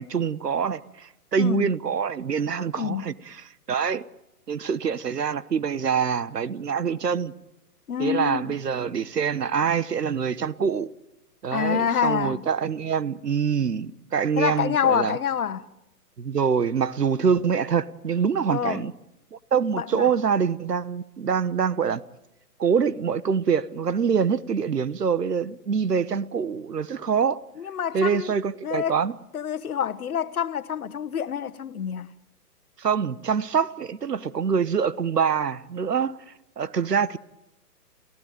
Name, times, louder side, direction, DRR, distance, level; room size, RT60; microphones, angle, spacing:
voice 1, 0.0-4.0 4.5-7.3 8.0-10.9 11.4-15.2 16.2-18.9 19.3-22.0 22.6-27.4 27.9-29.1 32.8-37.2, right 6 dB, 75° right, 1.2 m, -25 dB
voice 2, 1.4-1.7 2.8-3.0 7.9-8.6 11.5-12.4 14.4-15.7 18.5-18.8 19.7-20.1 27.6-28.3 28.6-29.0 29.3-32.1, left 8 dB, 65° left, 1.3 m, -27 dB
28.0 x 16.0 x 9.1 m
figure-of-eight pair, 130°, 48 cm